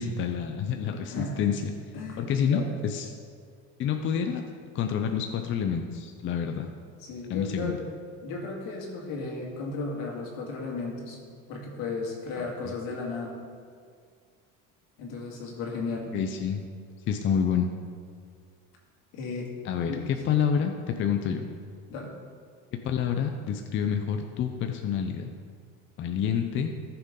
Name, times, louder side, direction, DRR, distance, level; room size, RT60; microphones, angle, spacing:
voice 1, 0.0-1.7 2.2-3.1 3.8-4.4 4.7-6.7 7.3-7.7 12.4-12.5 16.1-16.6 17.1-17.7 19.6-21.5 22.8-25.3 26.0-26.7, left 7 dB, 35° left, 5 dB, 0.6 m, -28 dB
voice 2, 1.0-1.4 1.9-2.7 7.0-7.8 8.2-11.2 11.5-13.3 15.0-16.1 19.1-19.5 19.9-20.0 21.9-22.1, left 3 dB, 70° left, -1 dB, 2.5 m, -35 dB
14.5 x 6.9 x 3.8 m, 2.1 s
cardioid pair, 145°, 35 cm